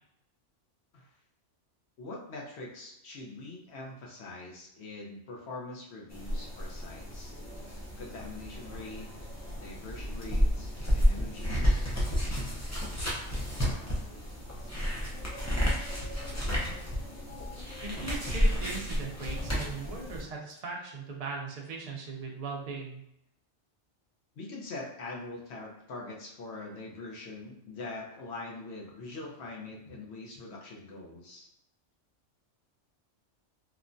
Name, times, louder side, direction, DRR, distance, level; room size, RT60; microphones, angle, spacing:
voice 1, 2.0-7.3 8.0-9.1 9.5-11.9 24.3-31.5, left 2 dB, 65° left, -2 dB, 0.9 m, -43 dB
sound 1, 6.1-20.2, equal, 25° left, 0.4 m, -31 dB
voice 2, 17.8-23.0, right 4 dB, 55° right, 0 dB, 0.4 m, -39 dB
3.0 x 2.2 x 2.5 m, 0.78 s
omnidirectional pair, 1.2 m